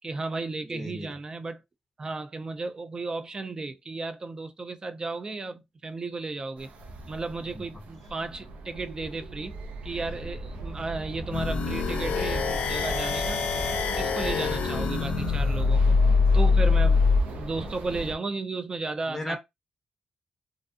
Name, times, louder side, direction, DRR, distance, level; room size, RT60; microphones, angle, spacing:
voice 1, 0.0-1.6 2.0-6.7 7.1-9.5 9.8-13.4 13.9-16.0 16.3-17.1 17.3-19.4, right 3 dB, 30° right, 0.4 m, -34 dB
voice 2, 0.7-1.1 7.6-7.7 19.1-19.4, left 1 dB, 10° left, 0.6 m, -35 dB
sound 1, 6.6-18.1, right 2 dB, 85° right, 0.5 m, -37 dB
sound 2, 11.3-17.2, left 4 dB, 85° left, 0.5 m, -24 dB
2.4 x 2.4 x 2.4 m
cardioid pair, 105°, 2 cm